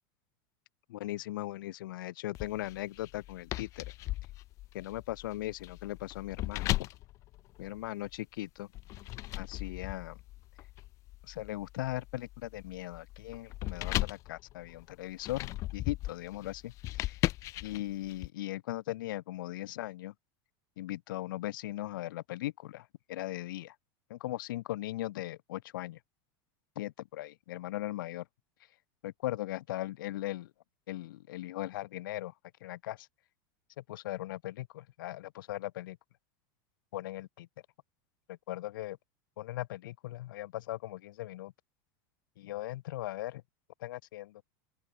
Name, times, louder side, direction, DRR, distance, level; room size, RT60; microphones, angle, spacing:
voice 1, 0.9-3.9 4.7-6.9 7.6-8.7 9.4-10.2 11.2-17.2 17.6-20.1 20.8-23.8 24.1-26.0 26.8-28.3 29.0-30.5 30.9-32.3 32.6-33.1 33.8-36.0 36.9-37.5 38.3-39.0 39.4-41.5 42.4-43.4 43.8-44.4, left 16 dB, 80° left, 2.2 m, -39 dB
sound 1, 2.3-8.2 8.7-18.3, left 17 dB, 30° left, 0.5 m, -38 dB
open air
supercardioid pair, 175°, 11 cm